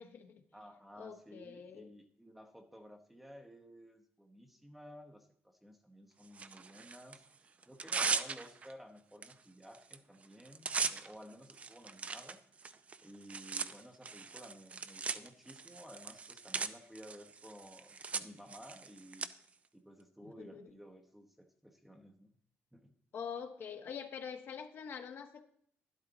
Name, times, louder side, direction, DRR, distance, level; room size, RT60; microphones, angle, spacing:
voice 1, 0.0-0.4 0.9-1.9 20.2-20.7 23.1-25.4, left 7 dB, 50° left, 6 dB, 1.3 m, -45 dB
voice 2, 0.5-12.4 13.0-19.3 19.7-22.3 22.7-22.9, equal, 5° right, 4 dB, 0.9 m, -54 dB
Tearing, 6.3-7.2 7.6-8.7 9.2-9.3 9.6-10.0 10.2-19.3, right 5 dB, 30° right, 0.5 m, -39 dB
12.0 x 11.5 x 4.0 m, 0.64 s
cardioid pair, 155°, 5 cm